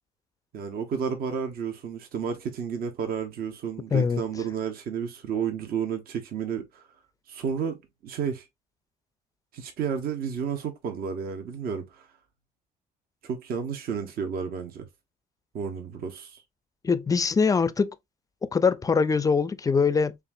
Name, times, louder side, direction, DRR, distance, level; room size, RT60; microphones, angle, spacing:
voice 1, 0.5-6.8 7.3-7.8 8.0-8.5 9.5-12.0 13.2-14.8 15.5-16.4, right 7 dB, 60° right, 1.0 m, -31 dB
voice 2, 3.9-4.2 16.8-18.0 18.4-20.2, left 5 dB, 20° left, 0.4 m, -23 dB
6.7 x 2.5 x 2.6 m
cardioid pair, 110°, 17 cm